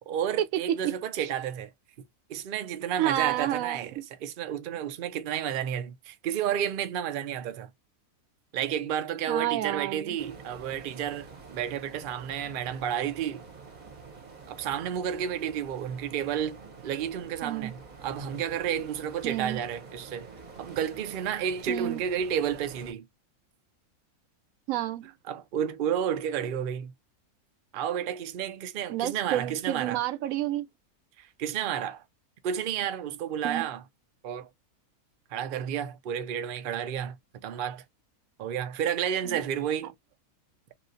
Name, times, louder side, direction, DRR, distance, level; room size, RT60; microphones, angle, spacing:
voice 1, 0.1-1.7 2.3-7.7 8.5-13.4 14.5-20.3 20.6-23.1 25.3-26.9 27.7-30.0 31.2-32.0 32.4-33.8 34.2-34.5 35.3-37.8 38.4-39.9, right 9 dB, 90° right, 0.4 m, -31 dB
voice 2, 3.0-4.0 9.3-10.2 17.4-17.7 19.2-19.6 21.7-22.0 24.7-25.1 28.9-30.7 33.4-33.6 39.2-39.4, right 13 dB, 70° right, 0.9 m, -30 dB
sound 1, 10.2-22.9, right 4 dB, 35° right, 0.8 m, -47 dB
3.0 x 2.7 x 2.6 m
omnidirectional pair, 1.6 m